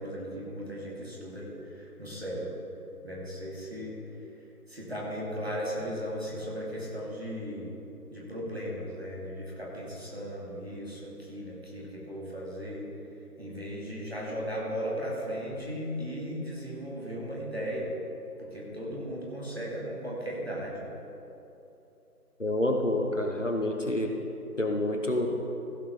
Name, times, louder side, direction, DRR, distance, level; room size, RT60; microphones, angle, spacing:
voice 1, 0.0-2.5 3.0-4.0 4.7-7.8 8.1-12.9 13.4-18.0 18.4-20.8, equal, 40° right, -5 dB, 2.3 m, -36 dB
voice 2, 22.4-24.1 24.6-25.3, left 1 dB, 50° left, 2 dB, 0.9 m, -28 dB
15.0 x 5.1 x 6.0 m, 2.9 s
figure-of-eight pair, 180°, 47 cm